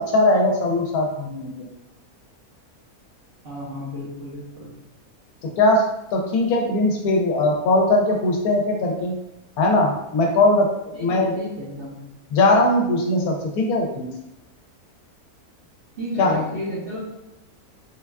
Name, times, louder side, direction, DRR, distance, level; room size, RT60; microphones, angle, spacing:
voice 1, 0.0-1.7 5.6-5.8 6.1-9.1 9.6-11.4 12.3-14.1 16.2-16.4, left 2 dB, 85° left, 1 dB, 1.1 m, -20 dB
voice 2, 3.4-4.7 10.9-12.0 16.0-17.0, left 1 dB, 50° right, -6 dB, 0.8 m, -32 dB
3.8 x 2.3 x 2.2 m, 0.89 s
omnidirectional pair, 1.6 m